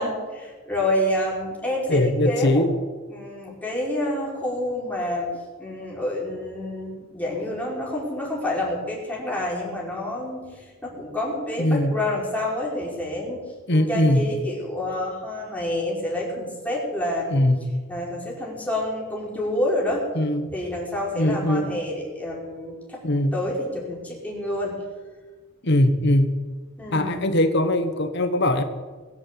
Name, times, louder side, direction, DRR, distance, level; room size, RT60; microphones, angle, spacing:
voice 1, 0.0-2.7 3.1-5.3 5.6-17.5 17.9-20.1 20.5-23.0 23.3-24.7 26.8-27.2, left 1 dB, 10° left, -4 dB, 5.0 m, -28 dB
voice 2, 1.9-2.7 11.6-11.9 13.7-14.2 17.3-17.7 20.1-20.5 21.2-21.7 23.0-23.3 25.6-26.4 26.9-28.6, left 1 dB, 55° left, 8 dB, 1.3 m, -21 dB
21.0 x 8.3 x 8.3 m, 1.4 s
head